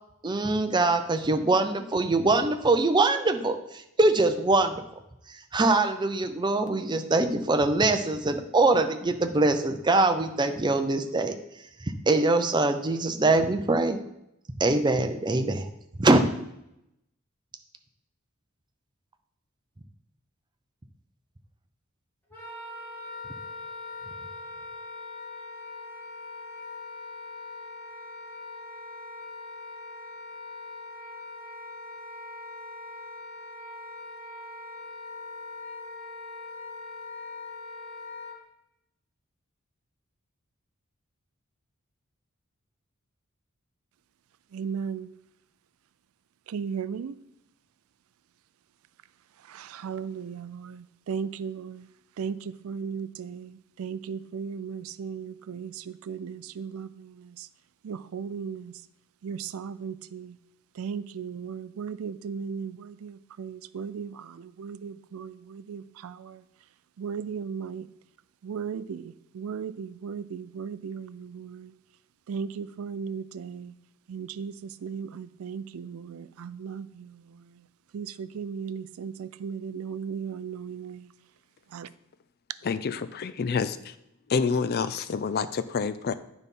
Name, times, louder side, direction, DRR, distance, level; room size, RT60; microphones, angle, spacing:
voice 1, 0.2-3.6 4.0-4.8 5.5-11.4 12.1-14.0 14.6-15.7 16.0-16.2, right 2 dB, 20° right, 0.6 m, -23 dB
Wind instrument woodwind instrument, 22.3-38.4, left 3 dB, 10° left, 2.3 m, -41 dB
voice 2, 44.5-45.1 46.5-47.2 49.5-51.9 52.2-57.5 57.8-58.8 59.2-60.4 60.8-66.4 67.0-67.9 68.4-71.7 72.3-73.7 74.1-77.6 77.9-81.1 81.7-81.9, right 6 dB, 75° right, 0.4 m, -36 dB
voice 3, 82.6-83.9 84.3-86.1, left 5 dB, 45° left, 0.4 m, -28 dB
9.5 x 4.1 x 5.4 m
head